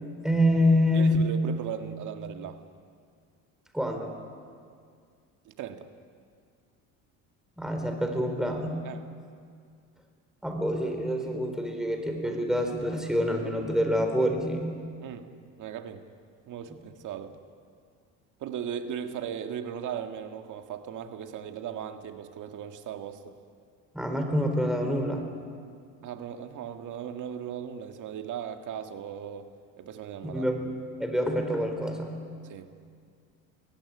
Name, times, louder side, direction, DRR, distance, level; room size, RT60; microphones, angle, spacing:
voice 1, 0.2-1.3 3.7-4.1 7.6-8.9 10.4-14.7 23.9-25.5 30.2-30.6 31.0-32.2, equal, ahead, 4 dB, 4.0 m, -26 dB
voice 2, 0.9-2.6 5.5-5.9 8.8-9.1 15.0-15.3 15.6-16.0 16.5-17.4 18.4-23.3 26.0-30.5 32.4-32.7, right 8 dB, 60° right, 6 dB, 1.8 m, -37 dB
22.5 x 17.0 x 9.7 m, 2.2 s
cardioid pair, 105°, 35 cm